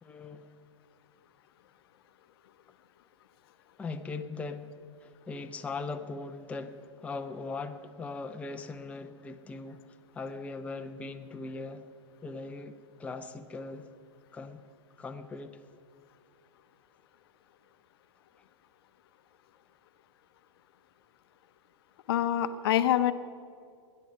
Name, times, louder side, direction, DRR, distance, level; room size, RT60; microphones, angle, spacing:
voice 1, 0.0-0.5 3.8-4.7 5.0-9.8 10.1-11.9 12.2-13.9 14.3-14.6 15.0-15.6, left 3 dB, 10° left, 0.5 m, -40 dB
voice 2, 22.1-23.1, left 11 dB, 50° left, 0.7 m, -25 dB
20.0 x 10.0 x 5.6 m
figure-of-eight pair, 100°, 16 cm